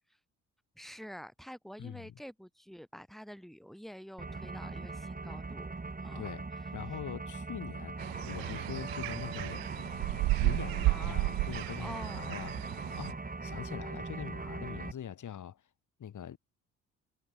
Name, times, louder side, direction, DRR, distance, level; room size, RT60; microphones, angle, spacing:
voice 1, 0.8-5.7 6.0-6.3 10.6-11.3 11.8-12.2, equal, ahead, 6.1 m, -47 dB
voice 2, 1.8-2.1 6.1-9.7 10.4-15.6 16.0-16.4, left 9 dB, 60° left, 5.4 m, -43 dB
sound 1, 4.2-14.9, right 3 dB, 25° right, 7.1 m, -40 dB
sound 2, 8.0-13.1, right 21 dB, 85° right, 0.8 m, -33 dB
supercardioid pair, 65°, 34 cm